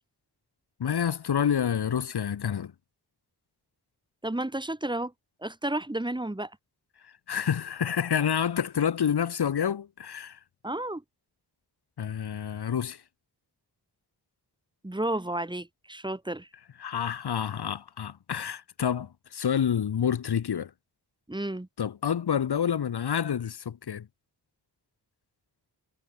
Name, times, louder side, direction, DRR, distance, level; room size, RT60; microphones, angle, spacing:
voice 1, 0.8-2.7 7.3-10.4 12.0-13.0 16.8-20.7 21.8-24.1, left 8 dB, 80° left, 1.5 m, -28 dB
voice 2, 4.2-5.1 5.4-6.5 10.6-11.0 14.8-16.5 21.3-21.7, right 1 dB, 10° right, 3.2 m, -31 dB
wide cardioid pair, 175°, 39 cm